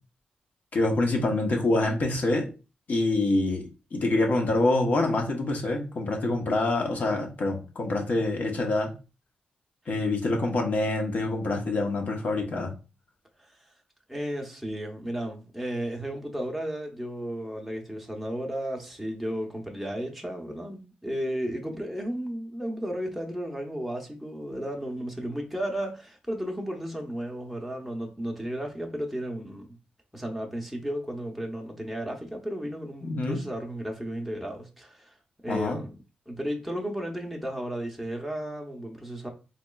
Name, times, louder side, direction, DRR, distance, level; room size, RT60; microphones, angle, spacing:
voice 1, 0.7-2.5 2.9-8.9 9.9-12.7 33.0-33.4 35.5-35.8, left 2 dB, 60° left, 1.0 m, -26 dB
voice 2, 13.4-13.7 14.1-29.7 30.1-35.2 35.4-35.9 36.3-39.3, equal, ahead, 0.7 m, -34 dB
3.9 x 2.9 x 2.3 m
cardioid pair, 100°, 3 cm